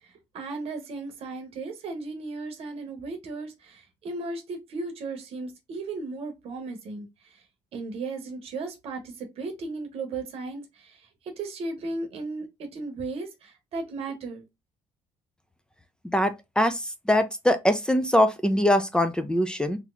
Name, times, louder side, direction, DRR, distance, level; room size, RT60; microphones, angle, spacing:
voice 1, 0.0-7.4 7.7-14.4, right 3 dB, 65° right, 0.9 m, -36 dB
voice 2, 16.1-16.8 17.1-19.8, left 1 dB, 10° left, 0.5 m, -22 dB
3.1 x 2.9 x 2.4 m
supercardioid pair, 70°, 11 cm